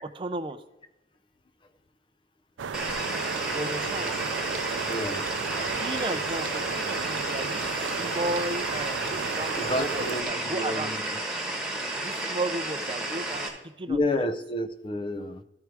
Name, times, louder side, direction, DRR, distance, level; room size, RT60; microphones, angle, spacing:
voice 1, 0.0-0.6 3.5-4.1 5.6-10.9 11.8-14.3, right 2 dB, 25° right, 10 dB, 0.5 m, -34 dB
sound 1, 2.6-10.2, right 6 dB, 90° right, 0.4 m, -34 dB
sound 2, 2.7-13.5, right 1 dB, 5° right, 1.2 m, -32 dB
sound 3, 2.9-3.0 3.3-4.1 4.5-4.8 5.2-6.0 6.4-6.7 7.2-7.9 8.3-8.6 9.1-9.8 10.3-10.4, right 5 dB, 45° right, 0.9 m, -42 dB
voice 2, 4.9-5.3 8.7-8.9 9.6-11.0 13.9-15.4, left 1 dB, 25° left, 11 dB, 0.4 m, -30 dB
13.0 x 4.7 x 4.7 m, 0.95 s
head